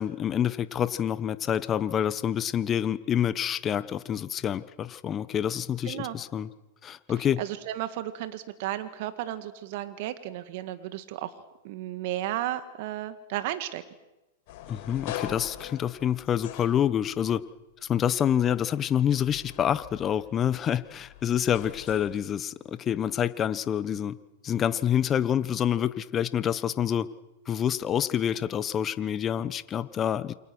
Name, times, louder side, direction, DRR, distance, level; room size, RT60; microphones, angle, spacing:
voice 1, 0.0-6.5 6.8-7.4 14.7-17.4 17.9-24.2 24.4-27.1 27.5-30.3, left 9 dB, 25° left, 15 dB, 1.2 m, -27 dB
voice 2, 5.8-6.2 7.2-13.8, right 13 dB, 55° right, 10 dB, 1.9 m, -34 dB
sound 1, 14.5-17.4 18.0-22.2, left 11 dB, 50° left, 5.5 m, -43 dB
28.5 x 26.0 x 6.3 m, 1.0 s
hypercardioid pair, 110°, 0 cm